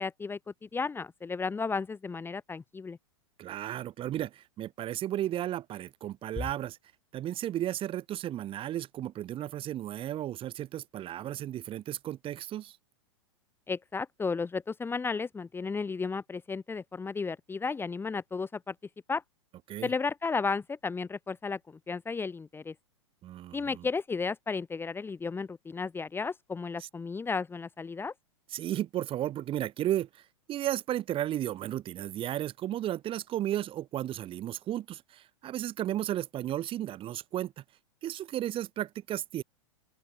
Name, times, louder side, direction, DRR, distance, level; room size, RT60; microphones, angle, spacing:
voice 1, 0.0-3.0 13.7-18.7 19.1-19.2 19.8-22.7 23.5-28.1, left 4 dB, 15° left, 2.4 m, -33 dB
voice 2, 3.4-6.8 7.1-12.8 19.7-19.9 23.2-23.9 26.8-26.9 28.5-37.6 38.0-39.4, right 12 dB, 30° right, 5.0 m, -34 dB
open air
hypercardioid pair, 110°, 17 cm